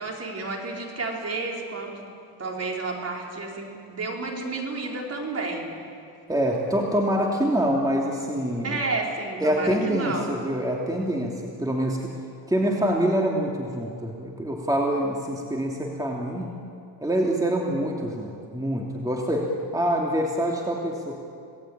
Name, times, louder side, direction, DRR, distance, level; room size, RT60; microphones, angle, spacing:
voice 1, 0.0-2.1 2.4-5.8 8.6-10.3, right 3 dB, 40° right, 0 dB, 5.0 m, -31 dB
voice 2, 6.3-8.8 9.4-12.1 12.5-16.5 17.0-21.2, equal, 10° right, -1 dB, 2.8 m, -25 dB
27.0 x 18.5 x 9.0 m, 2.4 s
cardioid pair, 110°, 39 cm